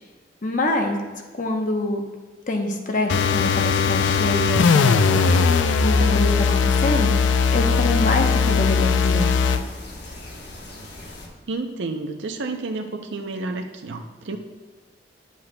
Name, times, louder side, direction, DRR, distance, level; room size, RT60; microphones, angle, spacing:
voice 1, 0.4-1.0 1.4-2.0 2.5-5.5 5.8-7.1 7.5-9.3, left 2 dB, 45° left, 3 dB, 0.8 m, -25 dB
sound 1, 3.1-9.7, left 5 dB, 90° left, 0.4 m, -19 dB
sound 2, 4.9-11.3, left 1 dB, 65° left, 1.1 m, -40 dB
voice 2, 11.5-14.4, right 3 dB, 80° right, 4 dB, 0.6 m, -30 dB
10.0 x 7.6 x 2.2 m, 1.3 s
head